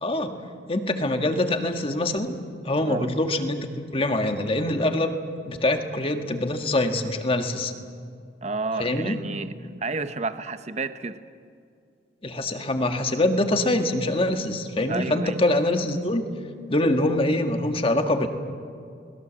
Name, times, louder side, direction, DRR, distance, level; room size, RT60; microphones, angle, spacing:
voice 1, 0.0-0.4 0.7-2.4 2.6-5.2 5.5-7.7 8.8-9.2 12.2-16.3 16.7-18.3, left 1 dB, 30° left, 1.8 m, -24 dB
voice 2, 8.4-11.2 14.9-15.4, right 3 dB, 35° right, 0.8 m, -31 dB
29.5 x 20.5 x 7.6 m
head